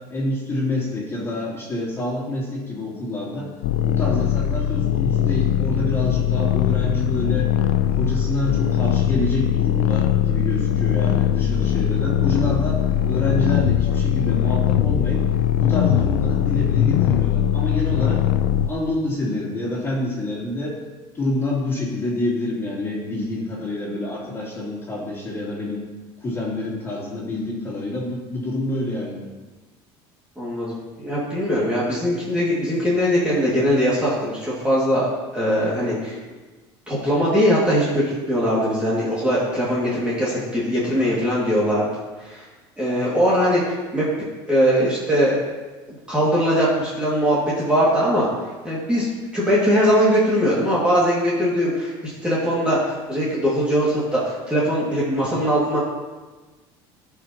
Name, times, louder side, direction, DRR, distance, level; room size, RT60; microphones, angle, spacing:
voice 1, 0.1-3.5 3.9-7.5 8.0-15.2 15.6-18.2 18.6-20.8 21.1-25.8 26.2-29.2, left 2 dB, 20° left, -6 dB, 3.0 m, -27 dB
sound 1, 3.6-18.7, left 10 dB, 80° left, 0.5 m, -20 dB
voice 2, 30.4-35.1 35.3-36.2 36.9-41.9 42.2-42.5 42.8-44.1 44.5-45.4 46.1-48.3 48.6-49.1 49.3-51.9 52.2-55.8, equal, 10° right, -8 dB, 2.2 m, -21 dB
16.5 x 5.8 x 3.0 m, 1.3 s
cardioid pair, 145°, 12 cm